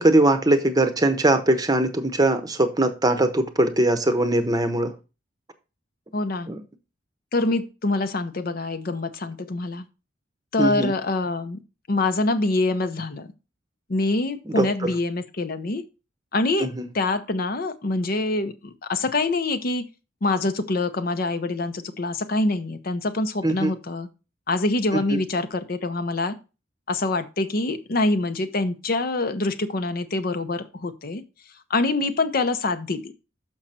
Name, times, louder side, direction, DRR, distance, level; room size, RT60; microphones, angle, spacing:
voice 1, 0.0-4.9 6.5-6.6 10.6-10.9 14.5-14.9 16.6-16.9 23.4-23.7 24.9-25.0, right 1 dB, 20° right, 9 dB, 0.8 m, -21 dB
voice 2, 6.1-6.5 7.3-9.8 10.5-11.6 11.9-13.3 13.9-15.8 16.3-16.7 16.9-19.9 20.2-24.1 24.5-26.3 26.9-31.2 31.7-33.1, left 2 dB, 50° left, 10 dB, 0.7 m, -25 dB
6.4 x 6.0 x 4.2 m, 0.30 s
head